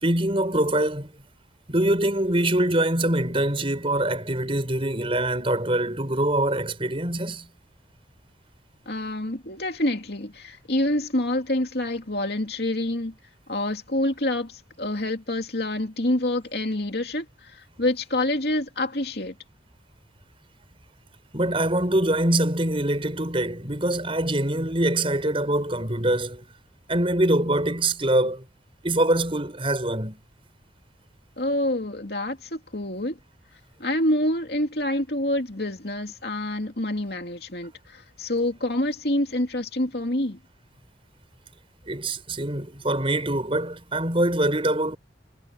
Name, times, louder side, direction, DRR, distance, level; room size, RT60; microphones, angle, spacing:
voice 1, 0.0-1.1 1.7-7.5 21.3-26.5 26.9-28.4 28.8-30.2 41.8-45.0, right 1 dB, 30° right, 5.7 m, -24 dB
voice 2, 8.9-13.1 13.5-17.2 17.5-19.3 31.4-33.2 33.8-40.4, left 1 dB, 60° left, 2.8 m, -27 dB
head